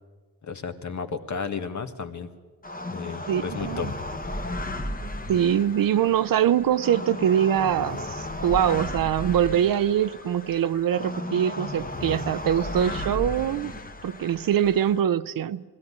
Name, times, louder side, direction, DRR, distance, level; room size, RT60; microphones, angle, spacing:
voice 1, 0.4-2.3 2.9-3.9, left 5 dB, 50° left, 1.6 m, -33 dB
sound 1, 2.6-15.0, left 1 dB, 25° left, 1.4 m, -35 dB
voice 2, 3.3-3.9 5.3-13.7 14.0-15.6, right 10 dB, 65° right, 0.7 m, -23 dB
20.5 x 16.5 x 9.7 m
cardioid pair, 115°, 37 cm